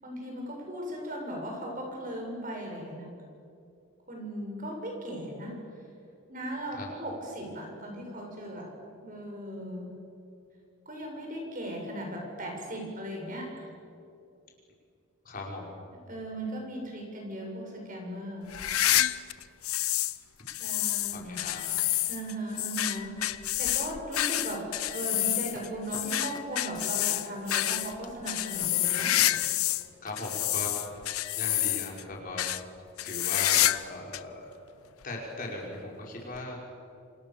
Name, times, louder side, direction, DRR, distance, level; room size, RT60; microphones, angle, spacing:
voice 1, 0.0-3.1 4.1-5.5 6.3-9.9 10.9-13.5 16.1-18.6 20.6-21.4 22.1-29.2, right 1 dB, 40° right, 0 dB, 7.1 m, -37 dB
voice 2, 15.2-15.7 21.1-21.7 30.0-30.7 31.3-32.4 33.0-33.6 33.9-34.5 35.0-36.6, left 2 dB, 40° left, -2 dB, 5.5 m, -38 dB
sound 1, 18.5-20.2 20.5-29.9 30.2-32.0 32.4-32.6 33.0-33.9 34.1-34.2 35.0-35.1 36.3-36.4, left 14 dB, 90° left, 0.8 m, -28 dB
sound 2, 25.1-25.2 25.5-27.5 27.9-30.8 31.1-31.2, left 3 dB, 20° left, 1.9 m, -48 dB
29.0 x 27.5 x 7.2 m, 2.6 s
head